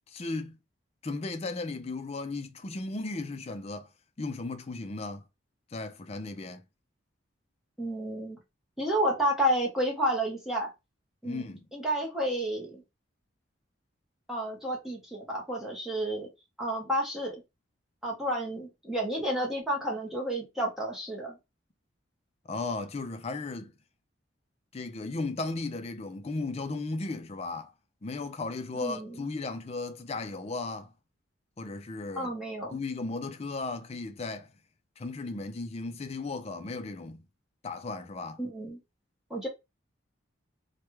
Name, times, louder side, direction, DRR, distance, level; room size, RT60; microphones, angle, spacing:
voice 1, 0.1-0.6 1.0-3.9 4.2-5.2 5.7-6.6 11.2-11.7 22.5-23.7 24.7-27.7 28.0-30.9 31.6-32.3 32.7-34.5 35.0-37.2 37.6-38.4, left 3 dB, 30° left, 0.4 m, -35 dB
voice 2, 7.8-8.4 8.8-10.7 11.2-11.5 11.7-12.8 14.3-16.3 16.6-17.4 18.0-21.4 28.7-29.2 32.2-32.8 38.4-38.8 39.3-39.5, right 1 dB, ahead, 0.9 m, -30 dB
3.2 x 2.2 x 3.0 m
head